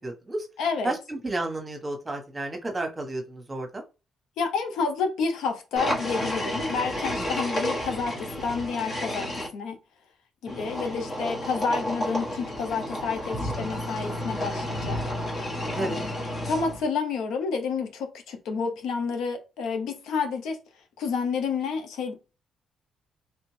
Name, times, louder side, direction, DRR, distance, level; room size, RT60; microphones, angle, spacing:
voice 1, 0.0-0.5 0.8-3.8 7.2-7.4 15.7-16.0, right 2 dB, 20° right, 1.1 m, -32 dB
voice 2, 0.6-0.9 4.4-9.8 10.4-15.0 15.8-16.1 16.4-20.6 21.0-22.3, left 5 dB, 85° left, 0.7 m, -29 dB
sound 1, 5.8-9.5 10.5-16.9, left 1 dB, 40° left, 1.3 m, -31 dB
3.2 x 2.5 x 3.2 m
cardioid pair, 90°, 0 cm